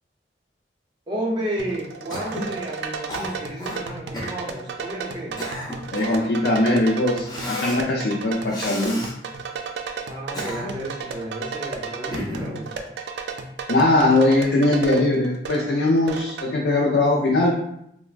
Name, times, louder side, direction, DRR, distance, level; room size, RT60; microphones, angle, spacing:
voice 1, 1.1-5.4 10.1-12.7, right 1 dB, 25° right, -2 dB, 0.5 m, -32 dB
sound 1, 1.6-16.5, right 5 dB, 75° right, 0.3 m, -34 dB
Cough, 2.1-2.5 3.1-3.8 4.1-4.4 5.1-6.3 7.2-7.8 8.5-9.1 10.1-10.9 12.1-12.6, left 1 dB, 25° left, 0.5 m, -32 dB
voice 2, 5.9-9.0 13.7-17.6, left 2 dB, 75° left, -3 dB, 0.4 m, -20 dB
3.2 x 2.1 x 2.4 m, 0.75 s
head